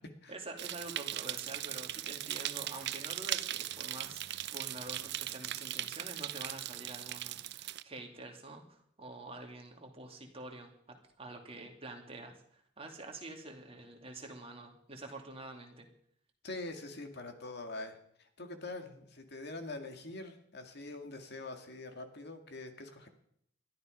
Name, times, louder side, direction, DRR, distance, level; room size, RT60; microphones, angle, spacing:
voice 1, 0.3-15.9, right 2 dB, 30° right, 2 dB, 2.6 m, -47 dB
sound 1, 0.6-7.8, right 13 dB, 60° right, 0.5 m, -39 dB
voice 2, 16.4-23.1, left 2 dB, 55° left, 6 dB, 2.1 m, -44 dB
21.5 x 13.0 x 5.2 m, 0.70 s
head